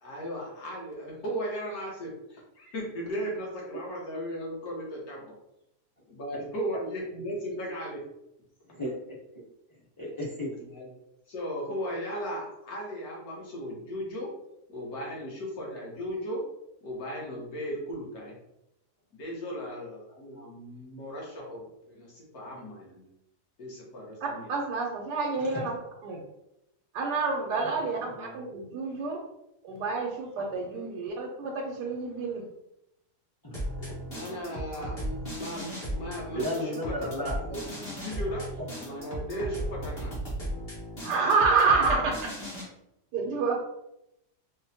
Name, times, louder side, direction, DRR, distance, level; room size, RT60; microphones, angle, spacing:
voice 1, 0.0-5.3 6.1-8.0 10.6-10.9 11.3-14.3 14.7-16.4 16.8-18.4 19.1-23.1 23.6-24.5 28.1-28.4 34.1-38.5 38.8-40.1, equal, 65° left, -3 dB, 1.5 m, -36 dB
voice 2, 10.0-10.5 33.4-34.1 36.3-37.3 41.1-41.2, equal, 20° left, -7 dB, 0.7 m, -34 dB
voice 3, 24.5-26.2 26.9-29.2 29.6-32.4 41.0-42.3 43.1-43.5, right 4 dB, 90° right, 0 dB, 1.2 m, -28 dB
sound 1, 33.5-42.6, equal, 40° left, 1.3 m, -36 dB
4.5 x 2.1 x 2.7 m, 0.84 s
omnidirectional pair, 1.8 m